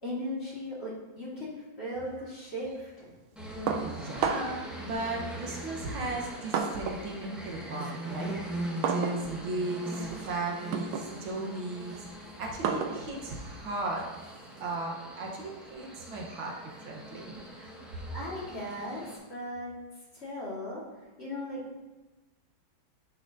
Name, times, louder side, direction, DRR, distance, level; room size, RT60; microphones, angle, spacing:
voice 1, 0.0-3.1 18.1-19.7 20.1-20.8 21.2-21.8, left 1 dB, 30° left, -7 dB, 1.9 m, -37 dB
sound 1, 3.4-19.2, right 1 dB, ahead, 0.8 m, -41 dB
sound 2, 3.7-4.7 5.6-7.1 7.4-14.7, right 6 dB, 90° right, 1.5 m, -35 dB
voice 2, 3.8-12.1 12.4-14.1 14.6-17.7, right 2 dB, 75° right, -2 dB, 1.9 m, -36 dB
10.0 x 5.8 x 2.7 m, 1.1 s
omnidirectional pair, 2.2 m